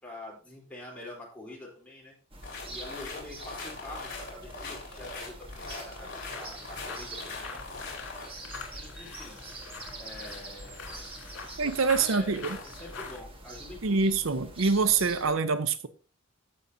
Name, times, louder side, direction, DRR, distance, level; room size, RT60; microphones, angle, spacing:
voice 1, 0.0-2.2 2.7-8.1 8.7-9.4 10.0-14.0, left 2 dB, 5° left, 3.6 m, -46 dB
sound 1, 2.3-15.3, right 2 dB, 25° right, 1.5 m, -45 dB
sound 2, 2.4-8.3, left 3 dB, 55° left, 4.0 m, -41 dB
sound 3, 6.1-13.2, left 4 dB, 75° left, 3.3 m, -44 dB
voice 2, 11.6-12.6 13.8-15.9, right 4 dB, 75° right, 0.7 m, -25 dB
15.0 x 6.3 x 2.7 m
head